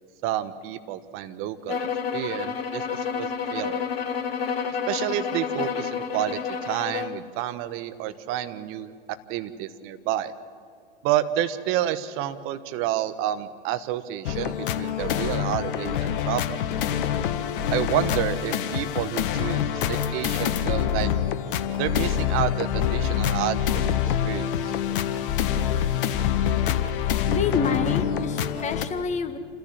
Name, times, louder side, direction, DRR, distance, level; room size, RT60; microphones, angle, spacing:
voice 1, 0.2-3.8 4.9-8.9 9.3-10.3 11.0-16.6 17.7-21.1 21.8-24.0 24.2-24.7, right 12 dB, 45° right, 12 dB, 1.3 m, -29 dB
sound 1, 1.7-7.2, left 6 dB, 85° left, 1.6 m, -29 dB
sound 2, 14.3-28.9, left 9 dB, 60° left, 1.5 m, -26 dB
voice 2, 27.3-29.4, left 5 dB, 25° left, 9 dB, 1.7 m, -28 dB
28.0 x 14.0 x 7.5 m, 2.3 s
hypercardioid pair, 95°, 29 cm